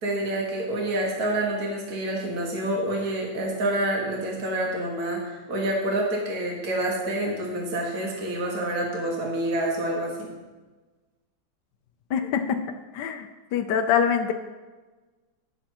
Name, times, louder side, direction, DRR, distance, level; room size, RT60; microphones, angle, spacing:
voice 1, 0.0-10.3, right 1 dB, 45° right, -2 dB, 2.2 m, -27 dB
voice 2, 12.1-12.6 12.9-14.3, left 8 dB, 65° left, 5 dB, 1.1 m, -24 dB
19.5 x 7.6 x 3.0 m, 1.3 s
omnidirectional pair, 2.4 m